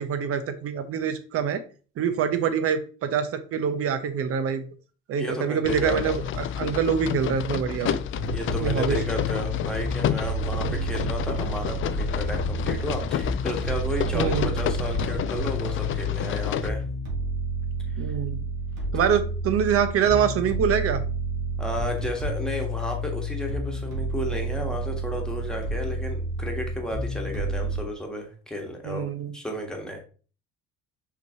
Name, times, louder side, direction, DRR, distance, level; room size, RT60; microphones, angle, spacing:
voice 1, 0.0-1.6 2.0-4.7 5.1-8.0 8.6-9.0 10.7-10.8 14.1-14.5 18.0-18.4 18.9-21.0 28.8-29.3, right 7 dB, 50° right, 10 dB, 0.8 m, -25 dB
voice 2, 5.2-6.2 8.3-16.8 21.6-30.0, equal, ahead, 1 dB, 1.4 m, -33 dB
sound 1, 5.6-16.7, left 9 dB, 45° left, 0.4 m, -30 dB
sound 2, 8.1-27.8, right 1 dB, 75° right, 1.5 m, -30 dB
5.8 x 3.1 x 2.8 m, 0.38 s
supercardioid pair, 95°, 30 cm